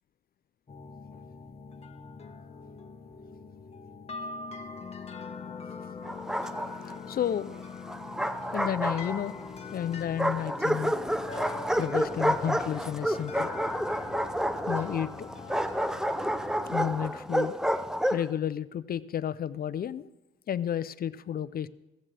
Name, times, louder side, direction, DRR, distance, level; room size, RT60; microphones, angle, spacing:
sound 1, 0.7-17.1, left 4 dB, 30° left, 1.3 m, -43 dB
Bark, 6.0-7.0 7.9-9.5 10.2-18.3, equal, 5° right, 0.6 m, -30 dB
voice 1, 7.1-7.5 8.5-9.4 9.7-10.9 11.8-13.5 14.7-15.3 16.7-17.6 18.1-20.1 20.5-21.7, left 9 dB, 50° left, 16 dB, 0.5 m, -31 dB
16.0 x 15.0 x 3.4 m, 1.0 s
cardioid pair, 90°, 20 cm